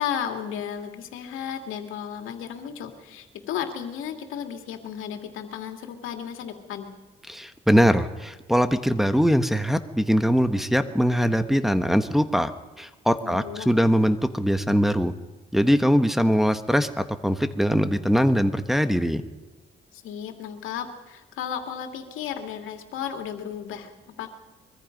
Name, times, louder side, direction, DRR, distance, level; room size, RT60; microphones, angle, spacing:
voice 1, 0.0-6.9 13.2-13.8 19.9-24.3, left 8 dB, 90° left, 5 dB, 2.5 m, -34 dB
voice 2, 7.3-12.5 12.8-15.1 15.5-19.2, equal, ahead, 7 dB, 1.4 m, -22 dB
24.5 x 23.0 x 5.4 m, 1.2 s
cardioid pair, 90°, 20 cm